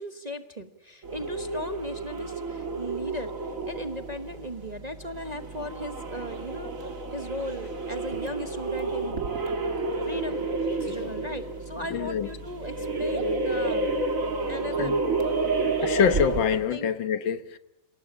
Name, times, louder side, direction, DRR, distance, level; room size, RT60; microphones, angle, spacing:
voice 1, 0.0-9.7 10.0-10.5 10.8-13.9 14.5-15.0 16.7-16.9, equal, 25° right, 1.0 m, -37 dB
sound 1, 1.0-16.7, right 3 dB, 45° right, 2.6 m, -30 dB
voice 2, 10.8-11.4 11.9-12.3 14.8-14.9 15.8-17.6, left 7 dB, 75° left, 1.9 m, -26 dB
27.5 x 18.0 x 9.9 m
omnidirectional pair, 2.1 m